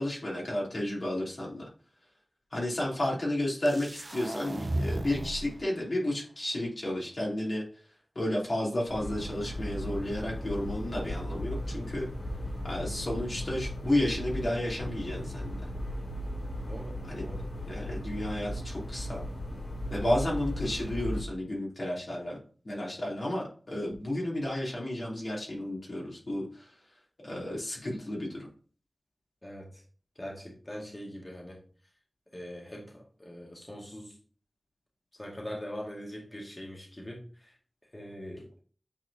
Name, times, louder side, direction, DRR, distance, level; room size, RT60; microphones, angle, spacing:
voice 1, 0.0-1.7 2.5-7.6 8.1-12.1 12.6-15.6 17.1-17.3 17.7-19.3 19.9-22.4 22.6-26.7 27.2-28.5, left 1 dB, 55° left, -4 dB, 3.1 m, -32 dB
sound 1, 3.7-5.6, right 1 dB, 45° right, 0.6 m, -34 dB
sound 2, 8.9-21.2, equal, 85° left, 2.9 m, -36 dB
voice 2, 16.7-17.5 29.4-29.8 30.2-31.6 32.3-34.1 35.2-37.5 37.9-38.5, equal, 30° left, -2 dB, 2.0 m, -42 dB
8.8 x 4.7 x 2.8 m, 0.41 s
wide cardioid pair, 55°, 0 cm